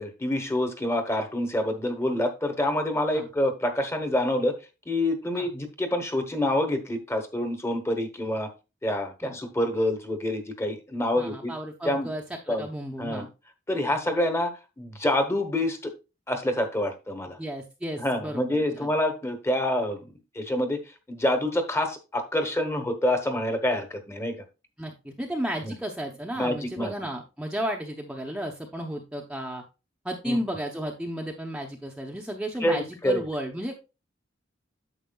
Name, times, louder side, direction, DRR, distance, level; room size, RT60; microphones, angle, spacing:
voice 1, 0.0-4.5 4.9-8.5 8.8-11.5 11.8-12.1 12.5-12.7 13.0-13.3 13.7-15.9 16.3-17.4 18.0-24.4 25.6-25.8 26.4-26.9 30.2-30.4 32.6-33.2, left 1 dB, 15° left, 7 dB, 1.1 m, -27 dB
voice 2, 11.1-13.3 17.4-18.9 24.8-29.6 30.0-33.7, equal, 5° right, 0 dB, 0.8 m, -33 dB
9.2 x 7.2 x 2.3 m, 0.28 s
head